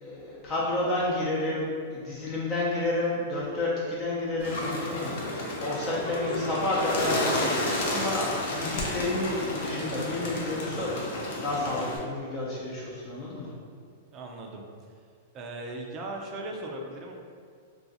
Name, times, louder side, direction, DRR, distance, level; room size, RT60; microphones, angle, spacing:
voice 1, 0.0-13.5, left 2 dB, 30° left, -6 dB, 0.7 m, -30 dB
Bird, 4.4-12.0, left 1 dB, 65° left, 0.7 m, -31 dB
voice 2, 14.1-14.6 15.3-17.1, right 2 dB, 30° right, 1 dB, 0.5 m, -38 dB
2.4 x 2.3 x 4.0 m, 2.1 s
hypercardioid pair, 140°, 0 cm